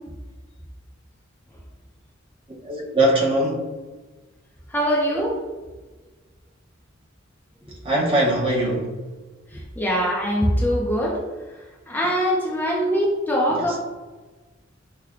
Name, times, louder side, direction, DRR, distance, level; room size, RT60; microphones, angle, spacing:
voice 1, 2.6-3.6 7.8-9.0 13.5-13.6, right 1 dB, 25° right, -2 dB, 0.7 m, -21 dB
voice 2, 4.7-5.4 9.5-11.2 11.9-13.8, equal, 10° left, -4 dB, 0.5 m, -22 dB
5.8 x 2.2 x 2.4 m, 1.3 s
head